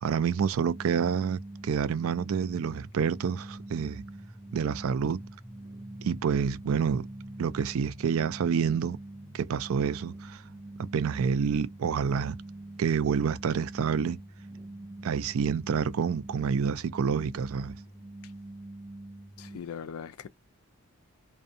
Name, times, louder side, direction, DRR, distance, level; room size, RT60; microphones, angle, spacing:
voice 1, 0.0-4.0 4.5-5.2 6.0-7.1 7.4-9.0 9.3-10.4 10.8-12.4 12.8-14.2 15.0-17.7, right 6 dB, 70° right, 0.3 m, -28 dB
sound 1, 0.6-19.6, right 1 dB, 10° right, 0.4 m, -44 dB
voice 2, 19.4-20.3, left 7 dB, 85° left, 0.4 m, -40 dB
2.6 x 2.2 x 2.5 m
head